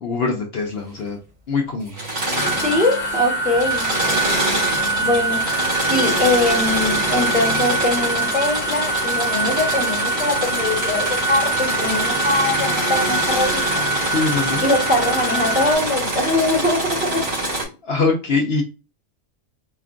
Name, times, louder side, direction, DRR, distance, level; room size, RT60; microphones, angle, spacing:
voice 1, 0.0-1.2 1.5-2.0 14.1-14.6 17.8-18.6, left 4 dB, 55° left, 1 dB, 0.8 m, -22 dB
Engine / Mechanisms, 1.9-3.2 3.5-17.6, right 1 dB, 85° right, 2.4 m, -25 dB
sound 1, 2.4-15.7, right 2 dB, 80° left, 1.1 m, -24 dB
voice 2, 2.6-3.9 5.0-14.1 14.6-17.3, left 2 dB, 10° right, -1 dB, 0.9 m, -22 dB
5.0 x 2.4 x 2.4 m, 0.31 s
omnidirectional pair, 1.4 m